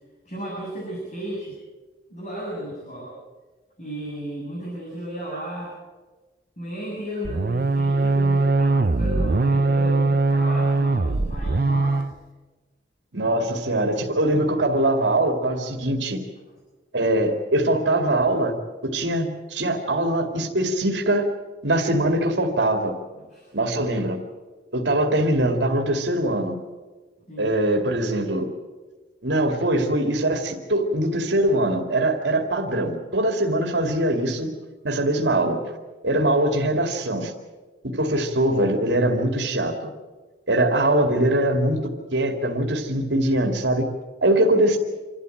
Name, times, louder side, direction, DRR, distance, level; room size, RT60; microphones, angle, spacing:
voice 1, 0.2-1.5 2.1-3.1 3.8-5.7 6.6-12.0 23.2-23.5 27.3-27.5, right 1 dB, 40° left, -5 dB, 7.6 m, -34 dB
sound 1, 7.2-12.1, right 3 dB, 55° right, 0.6 m, -21 dB
voice 2, 13.1-16.2 16.9-18.5 18.8-21.3 21.6-23.0 23.5-24.2 24.7-26.5 27.4-28.5 29.2-34.5 34.8-35.8 36.0-37.3 37.9-39.8 40.5-41.8 42.1-43.9 44.2-44.8, right 1 dB, 85° right, 3 dB, 2.4 m, -22 dB
27.0 x 13.0 x 9.2 m, 1.3 s
head